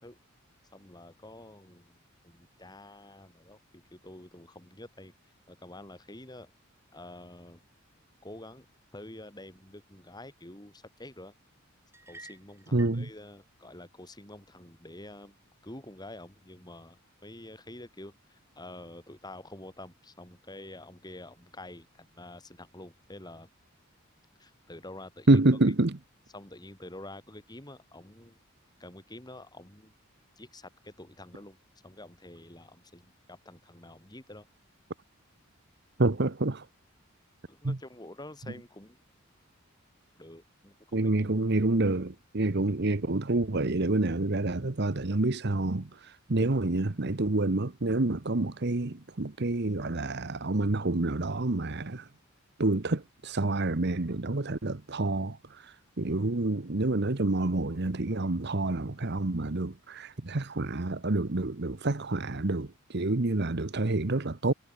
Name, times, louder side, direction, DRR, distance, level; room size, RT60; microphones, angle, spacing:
voice 1, 0.7-5.1 5.5-6.5 6.9-7.6 8.2-8.7 8.9-11.3 12.1-15.4 15.6-23.5 24.4-25.4 26.3-28.4 28.8-29.9 30.4-31.6 31.8-34.4 37.5-39.0 40.2-41.1, left 1 dB, 20° left, 3.5 m, -48 dB
sound 1, 11.9-13.0, right 2 dB, 10° right, 6.1 m, -50 dB
voice 2, 12.7-13.1 25.3-26.0 36.0-36.7 37.6-37.8 40.9-52.1 52.6-64.5, right 2 dB, 55° right, 1.1 m, -28 dB
head